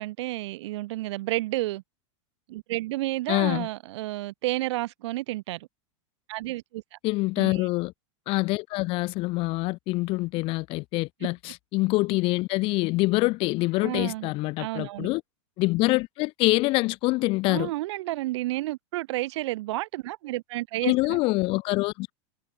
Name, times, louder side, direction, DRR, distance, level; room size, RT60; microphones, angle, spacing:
voice 1, 0.0-1.8 2.5-5.7 6.3-6.8 7.4-7.7 13.8-14.3 14.6-15.1 17.5-21.2, right 18 dB, 60° right, 6.3 m, -31 dB
voice 2, 3.3-3.7 7.0-7.9 8.3-15.2 15.6-17.7 20.8-22.1, left 22 dB, 35° left, 1.0 m, -25 dB
supercardioid pair, 160°, 16 cm